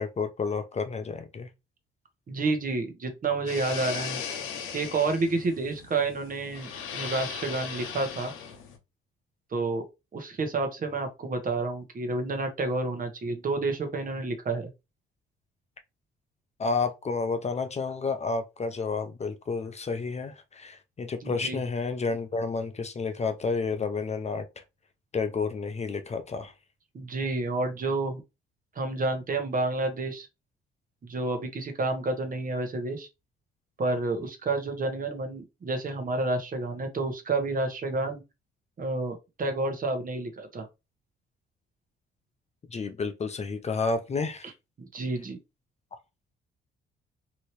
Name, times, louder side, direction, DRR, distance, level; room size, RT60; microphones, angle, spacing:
voice 1, 0.0-1.5 16.6-24.6 25.1-26.5 42.7-44.5, left 4 dB, 35° left, 0.6 m, -30 dB
voice 2, 2.3-4.2 4.7-8.3 9.5-9.8 10.1-14.7 21.2-21.6 26.9-28.2 28.7-30.3 31.0-33.1 33.8-38.2 38.8-40.7 44.4-44.5 44.8-45.4, right 3 dB, 45° right, 1.1 m, -30 dB
sound 1, 3.5-8.8, left 7 dB, 85° left, 0.8 m, -38 dB
3.0 x 2.7 x 3.1 m
supercardioid pair, 75°, 21 cm